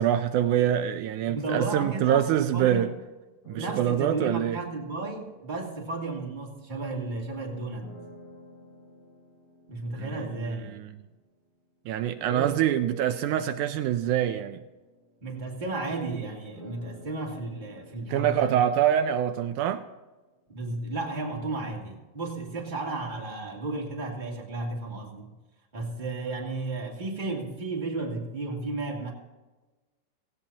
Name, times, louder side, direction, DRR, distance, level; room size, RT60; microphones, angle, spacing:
voice 1, 0.0-2.9 3.5-4.6 10.0-10.9 11.9-14.6 18.1-19.8, right 10 dB, 80° right, 8 dB, 2.1 m, -25 dB
voice 2, 1.3-2.9 3.5-7.9 9.7-10.8 12.3-12.5 15.2-18.6 20.5-25.3 25.7-29.1, right 3 dB, 15° right, -2 dB, 2.4 m, -33 dB
sound 1, 3.4-7.0 7.8-11.6 12.2-20.1, right 6 dB, 45° left, 4.4 m, -49 dB
17.5 x 16.5 x 2.9 m, 1.2 s
omnidirectional pair, 3.6 m